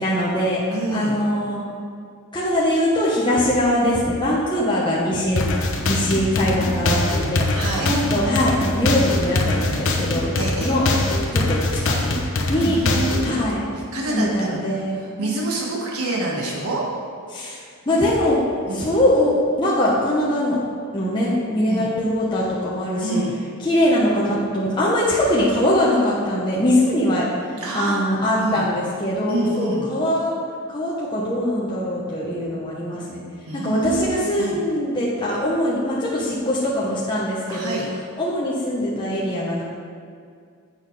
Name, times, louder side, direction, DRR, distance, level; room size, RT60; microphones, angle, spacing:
voice 1, 0.0-0.6 0.9-1.7 2.3-5.4 5.9-7.5 7.8-10.3 10.6-10.8 11.3-11.6 11.8-12.1 12.5-12.8 13.2-13.6 14.1-15.4 17.3-17.6 17.9-18.4 18.7-20.6 20.9-23.2 23.6-27.2 27.7-30.3 30.7-33.2 33.6-37.8 38.2-39.6, left 1 dB, 20° left, -7 dB, 1.1 m, -22 dB
voice 2, 0.7-1.2 7.5-7.9 10.4-10.8 12.5-13.4 13.9-14.6 15.0-16.8 18.7-18.9 21.7-21.9 23.0-23.4 27.6-28.0 28.4-28.6 29.3-29.9 33.5-34.6 37.5-37.8, right 2 dB, 75° right, -4 dB, 1.5 m, -27 dB
sound 1, 5.4-13.3, left 2 dB, 60° left, 1.0 m, -22 dB
8.5 x 6.4 x 4.9 m, 2.2 s
head